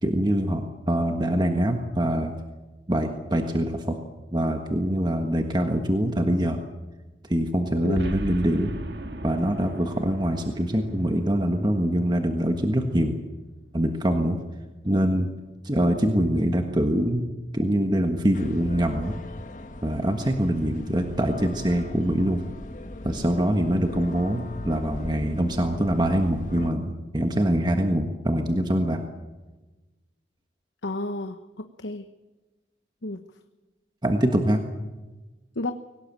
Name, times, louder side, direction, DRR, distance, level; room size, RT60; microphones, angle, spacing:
voice 1, 0.0-2.3 2.9-4.0 4.3-6.6 7.3-8.7 9.2-13.1 13.7-14.4 14.8-15.3 15.6-17.3 17.5-19.2 19.8-22.4 23.0-29.0 34.0-34.6, right 1 dB, 25° right, 4 dB, 1.5 m, -24 dB
voice 2, 7.8-8.1 30.8-32.1 33.0-33.2 35.6-35.7, left 2 dB, 85° left, 8 dB, 1.1 m, -31 dB
Boom, 8.0-12.4, equal, 65° right, 1.9 m, -38 dB
sound 1, 18.3-26.7, left 1 dB, 45° left, 1.8 m, -39 dB
23.0 x 18.5 x 8.9 m, 1.2 s
head